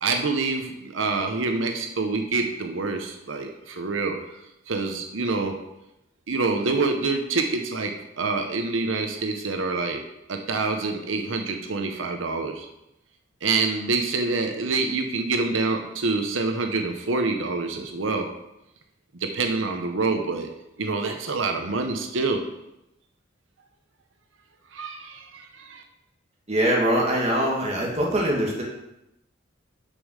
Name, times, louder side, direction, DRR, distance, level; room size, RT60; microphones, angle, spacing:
voice 1, 0.0-4.2 4.7-5.5 6.3-7.9 8.2-10.0 10.3-12.7 13.4-18.3 19.3-20.5 20.8-22.4 24.7-25.8, right 3 dB, 85° right, 4 dB, 0.9 m, -26 dB
voice 2, 26.5-28.6, right 1 dB, 35° right, -3 dB, 2.0 m, -23 dB
6.8 x 5.5 x 6.4 m, 0.88 s
head